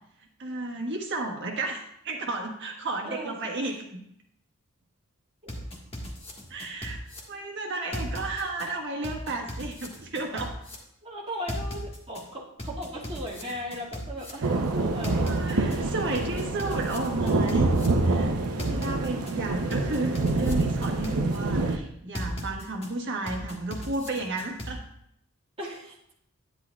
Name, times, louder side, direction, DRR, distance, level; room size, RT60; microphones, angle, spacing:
voice 1, 0.4-3.8 6.5-7.0 7.3-10.5 13.4-13.6 14.4-14.5 15.3-17.7 18.0-24.8, right 2 dB, 55° right, 1 dB, 1.4 m, -33 dB
voice 2, 3.0-3.8 5.4-5.5 11.0-15.3 15.7-16.1 25.6-26.0, equal, 25° right, -5 dB, 2.0 m, -38 dB
sound 1, 5.5-7.2 7.9-8.7 9.0-10.7 11.5-12.2 12.6-14.3 15.0-15.8 16.1-17.9 18.6-19.3 19.7-21.4 22.1-22.9 23.3-24.7, equal, 25° left, 1.5 m, -37 dB
sound 2, 14.4-21.8, right 3 dB, 75° right, 0.7 m, -26 dB
10.5 x 9.9 x 2.3 m, 0.75 s
head